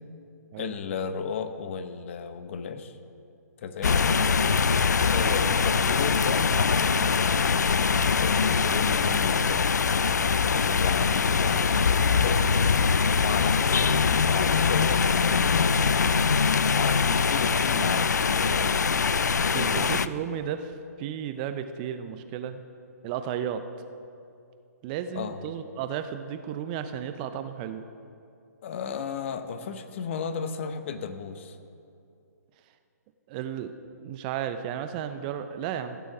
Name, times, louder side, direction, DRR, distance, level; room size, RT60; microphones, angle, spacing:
voice 1, 0.6-3.0 3.6-4.0 5.1-7.1 8.2-9.6 10.5-12.4 12.7-12.8 13.2-13.9 14.3-16.4 16.7-18.9 19.5-19.9 25.1-25.4 28.6-31.6, left 6 dB, 45° left, 10 dB, 0.9 m, -34 dB
sound 1, 3.8-20.1, left 5 dB, 80° left, 0.4 m, -23 dB
voice 2, 19.5-22.6 23.0-23.6 24.8-27.8 33.3-33.7 34.0-36.0, right 9 dB, 30° right, 9 dB, 0.6 m, -33 dB
15.5 x 7.0 x 6.0 m, 2.6 s
figure-of-eight pair, 135°, 9 cm